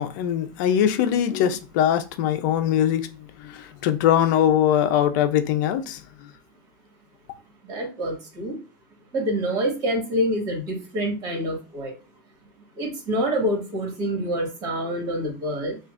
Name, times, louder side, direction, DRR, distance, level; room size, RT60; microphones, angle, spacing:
voice 1, 0.0-3.1 3.4-6.0, left 10 dB, 60° left, 0.6 m, -21 dB
voice 2, 7.6-8.6 9.1-11.9 12.8-15.8, equal, 30° right, 1.8 m, -26 dB
5.8 x 2.5 x 2.6 m
supercardioid pair, 140°, 11 cm